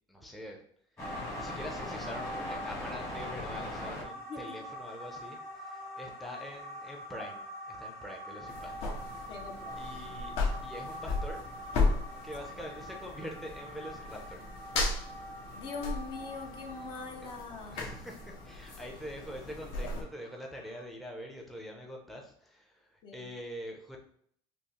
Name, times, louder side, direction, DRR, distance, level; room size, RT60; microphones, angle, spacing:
voice 1, 0.1-0.6 1.3-9.3 9.8-10.3 10.6-11.4 12.2-14.4 17.7-24.0, equal, ahead, 0 dB, 0.5 m, -44 dB
sound 1, 1.0-20.8, left 1 dB, 20° left, 1.2 m, -43 dB
sound 2, 8.5-20.0, left 3 dB, 60° left, 1.3 m, -36 dB
voice 2, 9.3-9.9 15.5-17.8 23.0-23.3, left 5 dB, 45° left, 3 dB, 0.6 m, -42 dB
5.3 x 2.0 x 2.9 m, 0.63 s
cardioid pair, 155°, 12 cm